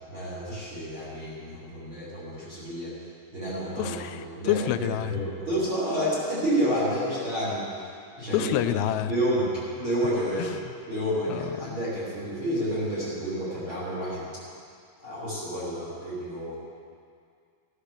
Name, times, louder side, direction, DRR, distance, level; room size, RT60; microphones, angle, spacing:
voice 1, 0.1-2.9 3.3-4.6 5.1-7.6 8.2-8.5 9.1-9.5 9.7-10.5 10.9-14.2 15.0-16.5, equal, 30° right, -8 dB, 4.5 m, -29 dB
voice 2, 3.8-5.2 8.3-9.1 10.4-10.7 11.3-11.8, left 11 dB, 85° left, 11 dB, 2.7 m, -28 dB
15.5 x 11.5 x 6.8 m, 2.2 s
omnidirectional pair, 5.0 m